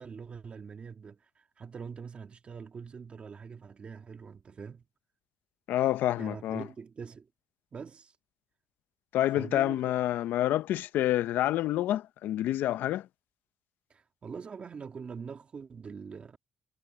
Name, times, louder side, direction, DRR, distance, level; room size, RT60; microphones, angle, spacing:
voice 1, 0.0-4.8 6.2-7.3 7.7-8.2 9.3-9.8 13.9-16.4, right 6 dB, 40° right, 2.1 m, -43 dB
voice 2, 5.7-6.6 9.1-13.1, left 13 dB, 85° left, 0.5 m, -28 dB
cardioid pair, 120°, 3 cm